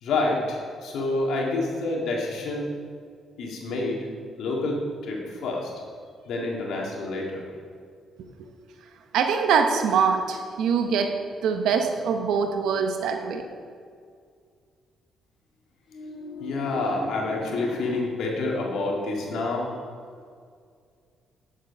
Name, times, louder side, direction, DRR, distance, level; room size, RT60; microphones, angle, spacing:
voice 1, 0.0-2.7 3.4-4.1 4.4-5.7 6.3-7.4 15.9-19.7, left 2 dB, 75° left, -2 dB, 2.0 m, -28 dB
voice 2, 9.1-11.1 11.4-13.4, right 6 dB, 80° right, 5 dB, 0.7 m, -23 dB
9.6 x 7.3 x 5.4 m, 2.1 s
cardioid pair, 90°, 0 cm